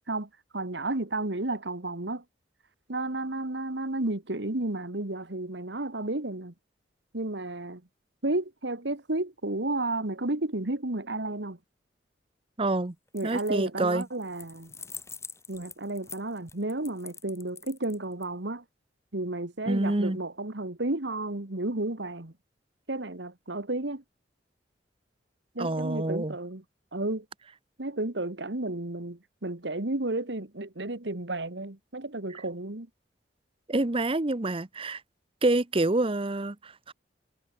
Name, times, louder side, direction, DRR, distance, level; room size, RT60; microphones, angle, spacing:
voice 1, 0.1-2.2 2.9-6.5 7.1-7.8 8.2-11.6 13.1-14.7 15.5-18.6 19.1-22.3 22.9-24.0 25.6-26.6 26.9-27.3 27.8-32.9, right 2 dB, 70° right, 2.0 m, -32 dB
voice 2, 12.6-12.9 13.2-14.1 19.7-20.2 25.6-26.4 33.7-35.0 35.4-36.9, right 2 dB, 30° right, 0.9 m, -27 dB
sound 1, 13.1-13.7 14.0-18.2, left 5 dB, 15° left, 4.3 m, -45 dB
head